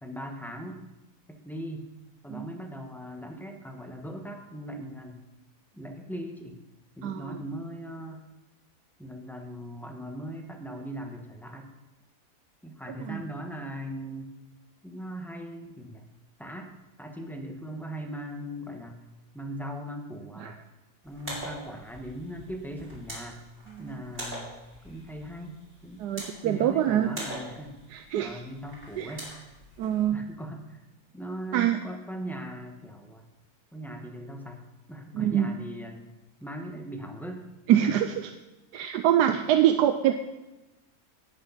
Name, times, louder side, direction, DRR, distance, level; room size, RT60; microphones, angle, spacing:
voice 1, 0.0-0.9 1.3-1.8 2.2-5.2 5.7-6.6 7.0-8.2 9.0-11.7 12.6-14.3 14.8-16.0 16.4-19.0 19.3-20.6 21.0-23.4 23.8-24.5 24.8-26.1 26.4-27.7 28.2-29.3 30.1-30.8 31.1-33.2 33.7-34.6 34.9-36.1 36.4-37.5 37.8-38.0, equal, ahead, 3 dB, 1.1 m, -39 dB
voice 2, 7.0-7.4 13.0-13.2 20.4-20.5 23.8-23.9 26.0-27.1 27.9-28.4 29.0-29.1 29.8-30.2 31.5-31.8 35.1-35.5 37.7-38.3 38.7-40.1, right 11 dB, 85° right, 8 dB, 1.2 m, -24 dB
sound 1, 21.0-30.0, right 1 dB, 35° right, 4.1 m, -43 dB
18.0 x 6.5 x 5.7 m, 1.0 s
omnidirectional pair, 1.7 m